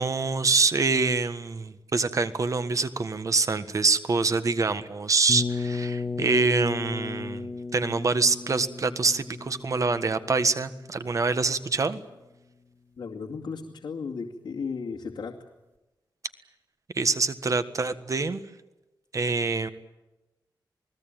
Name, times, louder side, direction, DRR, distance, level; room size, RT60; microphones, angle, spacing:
voice 1, 0.0-12.0 16.9-18.4 19.1-19.7, right 4 dB, 45° right, 11 dB, 1.5 m, -25 dB
sound 1, 5.3-11.1, left 4 dB, 25° left, 2.1 m, -34 dB
voice 2, 13.0-15.3, left 5 dB, 75° left, -2 dB, 2.4 m, -35 dB
29.0 x 19.5 x 9.1 m, 1.0 s
wide cardioid pair, 120°, 8 cm